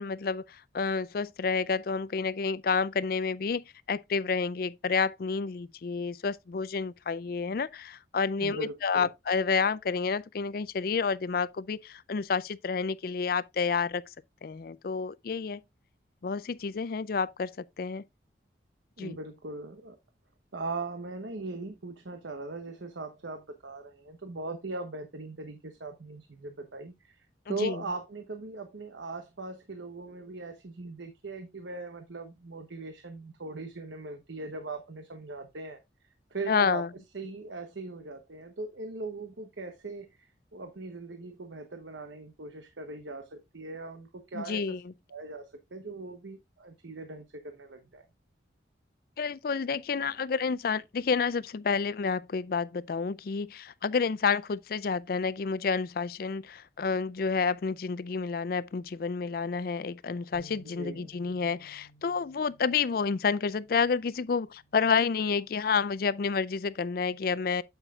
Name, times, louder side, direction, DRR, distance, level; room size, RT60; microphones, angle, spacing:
voice 1, 0.0-14.0 14.4-15.6 16.2-18.0 19.0-19.2 27.5-27.8 36.5-36.9 44.3-44.9 49.2-67.6, left 5 dB, 55° left, 0.4 m, -29 dB
voice 2, 8.4-9.1 19.0-20.0 20.5-35.8 36.3-36.8 37.1-44.6 45.1-48.1 60.6-61.1, right 3 dB, 85° right, 1.0 m, -40 dB
sound 1, 60.3-66.6, equal, 15° right, 2.1 m, -58 dB
9.0 x 8.0 x 2.4 m
head